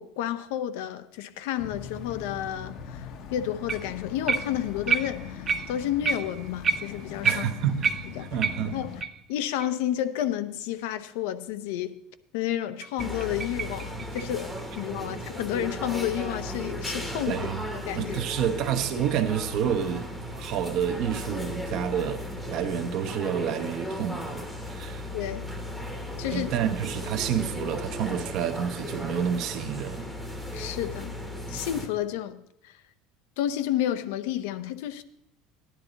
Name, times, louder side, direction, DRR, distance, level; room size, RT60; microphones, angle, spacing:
voice 1, 0.0-7.5 8.2-8.3 8.7-9.0 9.3-12.0 12.3-17.4 17.7-18.2 25.1-25.5 26.2-26.5 30.5-31.1 31.5-32.8 33.4-35.0, left 11 dB, 75° left, 0.7 m, -31 dB
sound 1, 1.6-9.0, left 6 dB, 40° left, 0.8 m, -41 dB
sound 2, 3.7-4.0 4.3-9.2 9.6-9.7 10.2-10.3 10.8-10.9 12.6-15.4 18.2-19.7, right 5 dB, 20° right, 0.4 m, -31 dB
voice 2, 7.2-8.8 15.0-15.1 17.3-17.6 17.9-25.0 26.3-30.1, right 8 dB, 45° right, 0.9 m, -29 dB
sound 3, 13.0-31.9, equal, 5° left, 1.0 m, -36 dB
15.0 x 10.5 x 4.0 m
cardioid pair, 175°, 0 cm